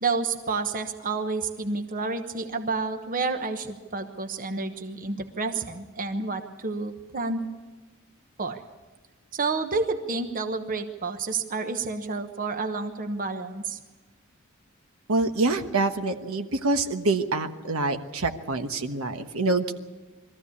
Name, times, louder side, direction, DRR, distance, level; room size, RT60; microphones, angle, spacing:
voice 1, 0.0-7.4 8.4-8.6 9.3-13.8, right 4 dB, 40° right, 7 dB, 1.1 m, -30 dB
voice 2, 15.1-19.7, right 3 dB, 70° right, 6 dB, 1.2 m, -26 dB
22.5 x 14.5 x 8.5 m, 1.2 s
head